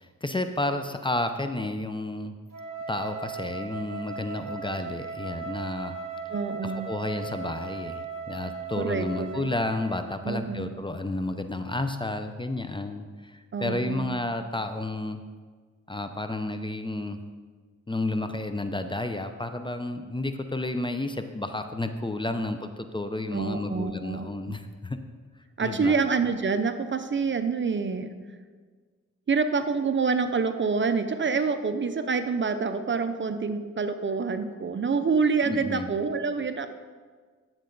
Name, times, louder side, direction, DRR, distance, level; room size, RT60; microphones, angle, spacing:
voice 1, 0.0-2.3 2.9-6.0 6.6-15.2 15.9-17.2 17.9-25.0 25.6-26.0 35.4-35.9, left 2 dB, 15° left, 8 dB, 0.6 m, -31 dB
Wind instrument woodwind instrument, 2.5-10.2, right 5 dB, 60° right, 1.9 m, -38 dB
voice 2, 6.3-6.9 8.8-9.5 10.2-10.7 13.5-14.2 23.3-24.5 25.6-28.1 29.3-36.7, right 5 dB, 40° right, 9 dB, 0.7 m, -27 dB
10.5 x 7.5 x 3.9 m, 1.5 s
cardioid pair, 70°, 30 cm